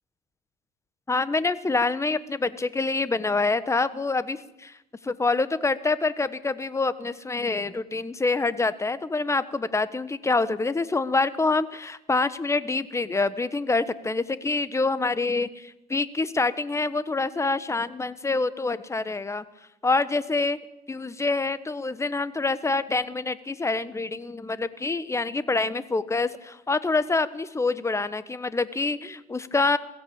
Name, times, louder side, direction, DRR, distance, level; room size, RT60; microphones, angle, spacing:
voice 1, 1.1-4.7 5.0-19.4 19.8-20.6 20.9-29.8, left 3 dB, 15° left, 15 dB, 1.2 m, -26 dB
21.5 x 15.5 x 8.8 m, 0.91 s
cardioid pair, 110°, 17 cm